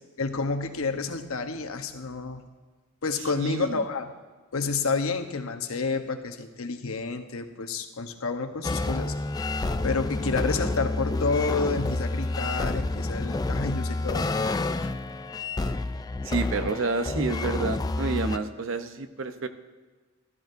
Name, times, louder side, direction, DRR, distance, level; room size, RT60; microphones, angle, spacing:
voice 1, 0.2-2.4 3.0-4.1 4.5-9.1 9.8-14.9, left 4 dB, 80° left, 6 dB, 0.9 m, -29 dB
voice 2, 3.3-3.8 16.2-19.5, right 3 dB, 65° right, 9 dB, 0.7 m, -29 dB
sound 1, 8.6-18.4, left 2 dB, 20° left, 0.3 m, -29 dB
13.5 x 13.0 x 2.6 m, 1.3 s
head